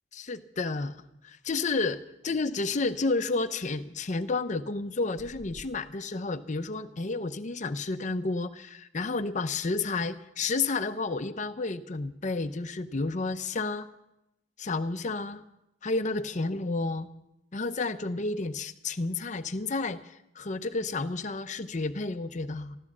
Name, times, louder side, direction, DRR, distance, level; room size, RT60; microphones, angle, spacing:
voice 1, 0.1-0.9 1.2-13.9 14.6-15.4 15.8-17.1 17.5-22.8, left 3 dB, 40° left, 9 dB, 0.6 m, -31 dB
sound 1, 5.2-5.7, left 1 dB, 70° right, 3.0 m, -49 dB
14.5 x 12.0 x 7.3 m, 0.88 s
head